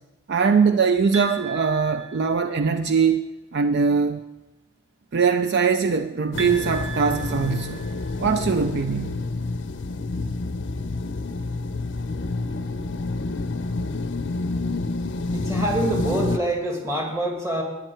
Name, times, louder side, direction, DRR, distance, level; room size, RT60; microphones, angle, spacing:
voice 1, 0.3-3.3 3.5-4.2 5.1-7.9 8.2-9.2, right 5 dB, 50° right, 9 dB, 0.4 m, -21 dB
sound 1, 1.1-2.8 6.4-8.4, right 5 dB, 75° right, 1.2 m, -37 dB
sound 2, 6.3-16.4, left 3 dB, 60° left, 0.6 m, -28 dB
voice 2, 15.3-17.6, right 1 dB, 15° right, 1 dB, 1.8 m, -25 dB
12.5 x 9.9 x 4.5 m, 1.1 s
head